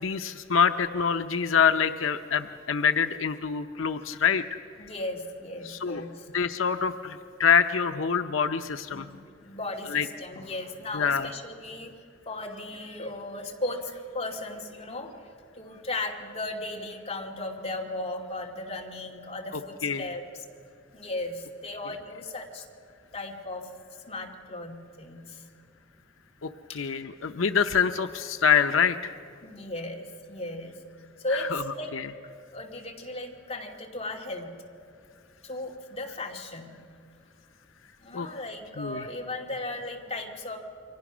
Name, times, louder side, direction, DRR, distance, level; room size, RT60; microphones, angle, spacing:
voice 1, 0.0-4.4 4.8-4.9 5.6-6.0 6.3-9.1 9.9-10.1 10.9-11.3 19.8-20.1 26.4-29.2 31.5-31.6 31.9-32.1 38.1-38.3 38.8-39.1, left 6 dB, 85° left, 8 dB, 0.7 m, -25 dB
voice 2, 4.8-6.3 8.9-12.0 12.3-20.4 20.9-22.7 23.1-23.7 24.1-25.4 29.4-30.8 31.2-31.9 32.5-34.5 35.4-36.8 38.0-40.6, left 2 dB, 30° left, 0 dB, 2.7 m, -36 dB
28.5 x 24.0 x 6.2 m, 2.4 s
head